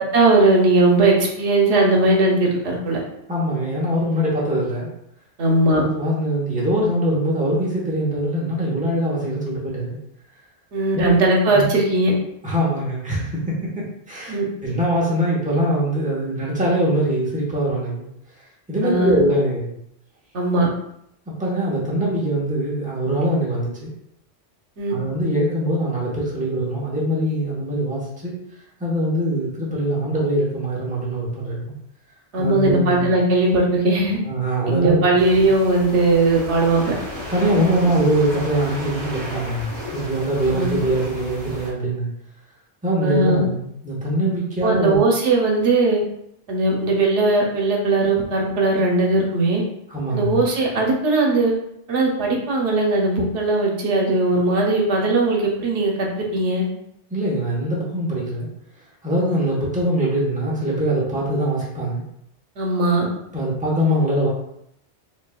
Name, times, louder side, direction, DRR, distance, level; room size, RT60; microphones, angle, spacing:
voice 1, 0.0-3.0 5.4-5.8 10.7-12.1 14.3-14.4 18.8-19.2 20.3-20.7 24.8-24.9 32.3-34.2 34.7-36.9 40.5-40.7 43.0-43.5 44.6-46.0 46.5-49.6 50.1-51.5 51.9-56.6 62.6-63.1, right 2 dB, 90° right, 0 dB, 1.1 m, -19 dB
voice 2, 3.3-4.9 5.7-10.0 10.9-11.1 11.5-11.6 12.4-18.1 18.7-19.7 21.3-23.9 24.9-28.3 28.8-31.7 32.4-33.1 34.2-35.0 35.3-35.5 37.3-42.1 42.8-45.0 49.9-50.4 57.1-58.5 59.0-62.0 63.3-64.3, right 1 dB, 10° right, -6 dB, 0.9 m, -22 dB
sound 1, 35.2-41.7, left 1 dB, 50° right, 1.6 m, -34 dB
4.8 x 2.5 x 2.3 m, 0.75 s
omnidirectional pair, 1.2 m